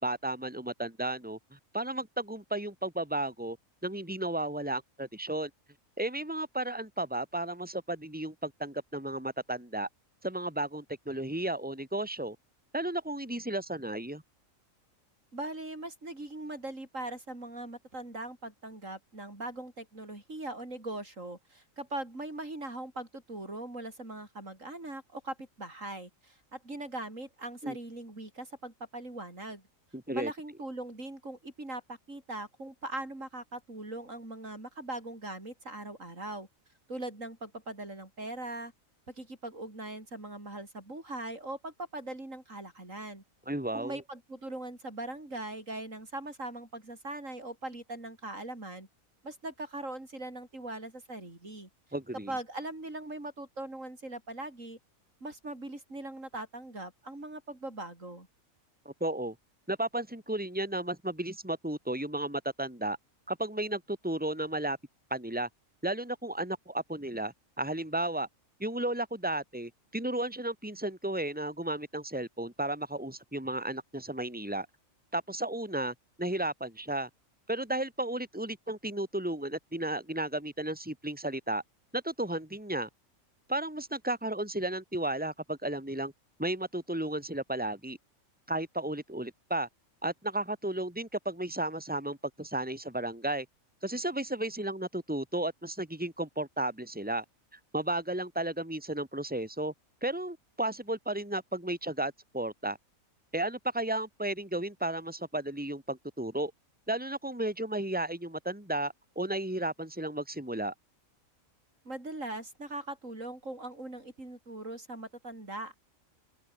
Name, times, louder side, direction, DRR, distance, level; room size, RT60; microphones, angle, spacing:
voice 1, 0.0-3.6 3.8-5.5 6.0-9.9 10.2-12.4 12.7-14.2 27.6-27.8 29.9-30.3 43.5-44.0 51.9-52.3 58.9-59.4 59.7-63.0 63.3-64.8 65.1-65.5 65.8-68.3 68.6-74.7 75.1-77.1 77.5-81.6 81.9-82.9 83.5-86.1 86.4-88.0 88.5-89.7 90.0-93.5 93.8-97.2 97.5-99.7 100.0-102.8 103.3-106.5 106.9-110.7, right 1 dB, 5° right, 4.0 m, -33 dB
voice 2, 15.3-29.6 30.1-36.5 36.9-38.7 39.1-43.2 43.7-48.9 49.2-51.7 52.3-54.8 55.2-58.3 111.8-115.7, right 2 dB, 70° right, 6.8 m, -40 dB
open air
omnidirectional pair, 1.4 m